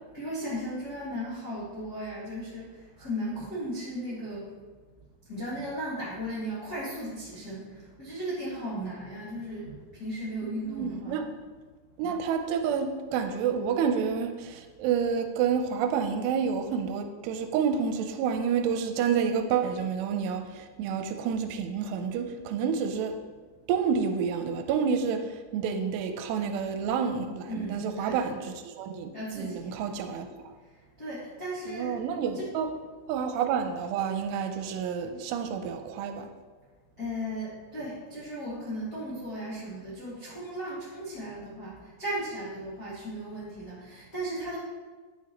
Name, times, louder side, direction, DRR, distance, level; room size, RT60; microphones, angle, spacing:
voice 1, 0.1-2.6 3.0-4.5 5.3-11.3 27.5-28.2 29.1-29.8 31.0-31.9 32.3-32.4 37.0-44.6, equal, 70° left, -10 dB, 0.9 m, -36 dB
voice 2, 10.4-11.2 12.0-23.2 23.7-30.3 31.7-32.7 33.1-36.3, right 6 dB, 85° right, 7 dB, 2.6 m, -29 dB
9.7 x 6.0 x 2.9 m, 1.4 s
omnidirectional pair, 4.9 m